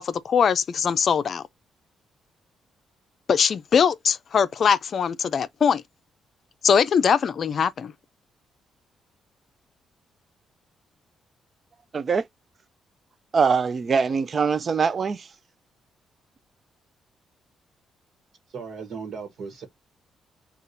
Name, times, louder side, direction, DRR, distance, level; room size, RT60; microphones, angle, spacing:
voice 1, 0.0-1.4 3.3-5.8 6.6-7.9, left 7 dB, 55° left, 0.4 m, -21 dB
voice 2, 11.9-12.3 13.3-15.3, right 5 dB, 45° right, 0.4 m, -23 dB
voice 3, 18.5-19.7, right 5 dB, 70° right, 1.2 m, -36 dB
6.5 x 2.4 x 2.6 m
cardioid pair, 80°, 0 cm